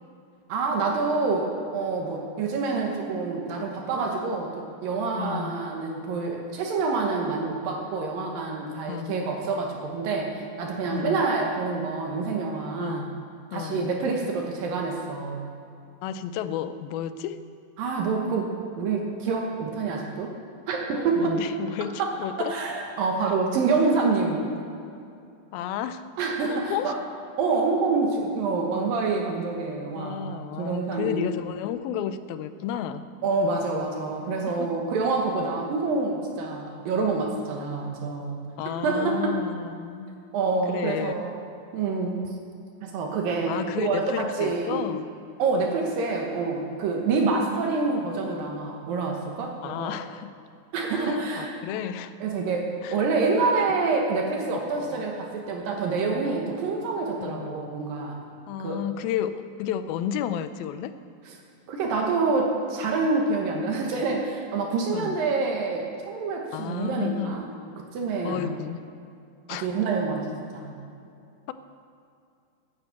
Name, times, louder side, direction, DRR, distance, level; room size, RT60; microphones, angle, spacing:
voice 1, 0.5-13.1 13.5-15.5 17.8-20.3 20.7-21.5 22.0-24.5 26.2-27.0 27.4-31.3 33.2-38.4 38.8-39.4 40.3-41.4 41.7-42.3 42.8-44.9 45.4-49.9 50.7-51.6 52.2-58.2 58.6-58.8 61.7-67.5 67.9-68.5 69.5-70.7, right 4 dB, 75° right, 1 dB, 2.9 m, -27 dB
voice 2, 5.2-5.7 8.9-9.3 10.8-11.3 12.8-13.1 13.5-13.9 16.0-17.4 21.2-22.6 25.5-26.1 26.5-26.9 30.0-33.0 34.5-34.7 38.6-40.2 40.7-41.1 43.5-45.1 49.6-50.4 50.9-52.2 52.8-53.0 53.6-53.8 54.8-55.1 57.2-57.5 58.5-60.9 64.9-65.2 66.5-67.4 68.2-68.9 69.5-69.7, left 9 dB, 85° left, 12 dB, 2.5 m, -32 dB
10.5 x 9.9 x 8.3 m, 2.5 s
omnidirectional pair, 4.2 m